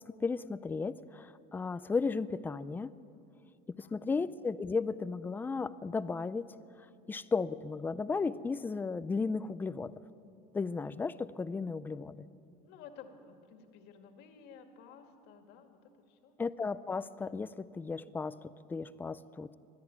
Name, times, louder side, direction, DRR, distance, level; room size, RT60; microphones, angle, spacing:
voice 1, 0.0-2.9 3.7-6.5 7.1-9.9 10.5-12.3 16.4-19.5, left 4 dB, 10° left, 15 dB, 0.4 m, -35 dB
voice 2, 3.8-4.2 12.6-16.4, left 6 dB, 65° left, 5 dB, 2.2 m, -54 dB
22.0 x 13.0 x 9.6 m, 2.6 s
cardioid pair, 160°, 19 cm